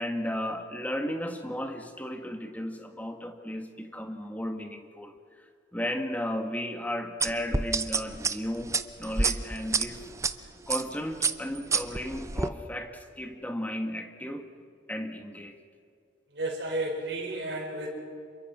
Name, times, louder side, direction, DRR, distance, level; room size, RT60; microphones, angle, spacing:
voice 1, 0.0-5.1 5.7-10.0 10.7-14.5 14.9-15.6, equal, 10° left, 5 dB, 1.7 m, -34 dB
sound 1, 7.2-10.3 10.7-10.9 11.2-12.5, right 4 dB, 15° right, 0.7 m, -28 dB
voice 2, 16.3-18.0, right 1 dB, 60° right, -2 dB, 5.2 m, -32 dB
27.5 x 23.5 x 6.1 m, 2.4 s
head